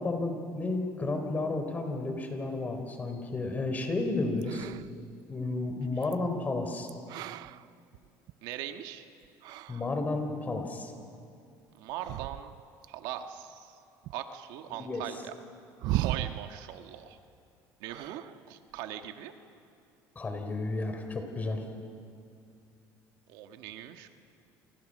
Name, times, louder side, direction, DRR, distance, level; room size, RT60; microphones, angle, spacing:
voice 1, 0.0-4.7 5.3-6.9 9.7-10.9 14.7-15.0 20.2-21.6, left 2 dB, 20° left, 6 dB, 3.8 m, -32 dB
sound 1, 4.4-5.1 6.0-6.1 6.9-8.5 9.2-9.9 11.9-12.8 14.0-14.1 15.8-16.6 17.9-18.4 18.7-19.1, right 16 dB, 70° right, 0.6 m, -36 dB
voice 2, 8.4-9.1 11.8-12.5 12.9-13.8 14.1-15.3 15.9-17.2 17.8-19.3 23.3-24.1, right 11 dB, 85° right, 6 dB, 1.6 m, -40 dB
27.5 x 26.0 x 6.6 m, 2.5 s
cardioid pair, 130°, 7 cm